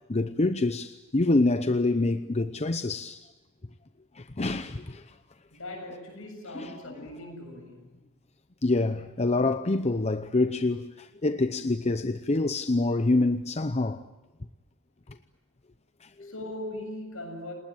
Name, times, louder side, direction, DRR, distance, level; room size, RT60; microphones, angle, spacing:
voice 1, 0.1-3.3 4.2-5.1 6.5-6.7 8.6-14.0 16.0-16.3, left 2 dB, 30° left, 0.8 m, -26 dB
voice 2, 5.5-8.0 16.2-17.5, left 1 dB, 70° left, 7.3 m, -40 dB
29.5 x 19.5 x 9.0 m
head